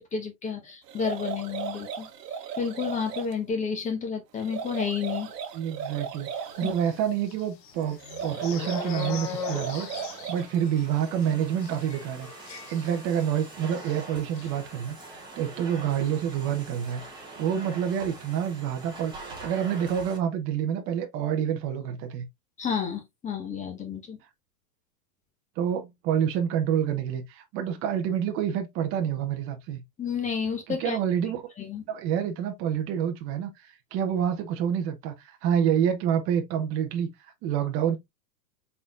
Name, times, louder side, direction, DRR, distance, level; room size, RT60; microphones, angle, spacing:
voice 1, 0.0-2.1 2.6-5.3 6.6-6.7 22.6-24.2 30.0-31.0 31.6-31.8, left 6 dB, 15° left, 1.1 m, -31 dB
sound 1, 0.9-3.3 4.4-6.8 8.0-10.6, right 7 dB, 70° right, 1.0 m, -36 dB
voice 2, 5.5-6.3 6.6-17.0 17.4-22.3 25.6-29.8 30.7-31.4 31.9-33.5 33.9-37.1 37.4-38.0, right 9 dB, 25° right, 0.8 m, -28 dB
sound 2, 6.8-13.5 13.8-14.0 14.2-14.5, left 8 dB, 80° left, 1.2 m, -40 dB
Domestic sounds home sounds, 9.5-20.2, right 2 dB, 10° right, 1.3 m, -45 dB
4.0 x 4.0 x 2.4 m
hypercardioid pair, 135°, 49 cm